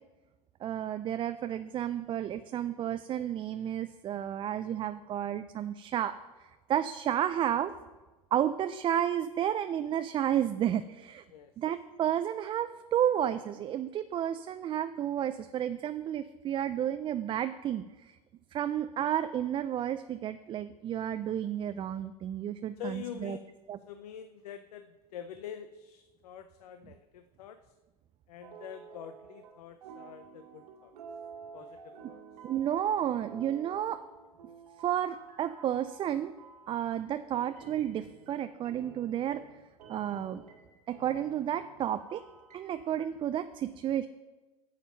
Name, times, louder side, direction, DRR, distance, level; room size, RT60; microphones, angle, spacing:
voice 1, 0.6-6.1 6.4-7.7 8.3-11.2 11.6-18.1 18.5-23.4 23.7-23.8 32.4-34.0 34.8-36.3 36.7-39.4 39.9-40.5 40.9-42.2 42.5-44.1, right 10 dB, 25° right, 10 dB, 0.4 m, -31 dB
voice 2, 22.8-23.5 23.9-27.7 28.3-30.9 31.5-32.2, left 9 dB, 75° left, 10 dB, 0.6 m, -45 dB
sound 1, 28.4-29.5 29.8-37.0 37.6-43.1, right 5 dB, 80° right, 2.1 m, -51 dB
8.6 x 7.2 x 5.7 m, 1.2 s
hypercardioid pair, 105°, 20 cm